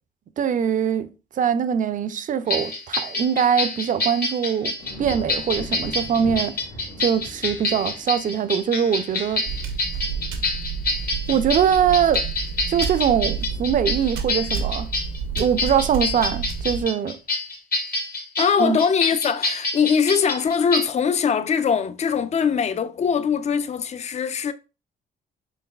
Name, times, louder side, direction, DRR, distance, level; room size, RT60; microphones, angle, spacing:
voice 1, 0.4-1.1 1.4-6.6 7.0-9.4 11.3-12.2 12.7-14.9 15.4-17.2 18.6-18.8, right 8 dB, 40° right, 0.4 m, -22 dB
sound 1, 2.5-20.8, left 2 dB, 50° left, 1.1 m, -27 dB
sound 2, 4.8-16.1 16.5-17.0, equal, 90° left, 1.2 m, -42 dB
sound 3, 9.5-16.8, right 6 dB, 90° right, 0.7 m, -30 dB
voice 2, 18.4-24.5, left 6 dB, 35° left, 0.4 m, -22 dB
3.9 x 3.5 x 2.2 m
cardioid pair, 90°, 20 cm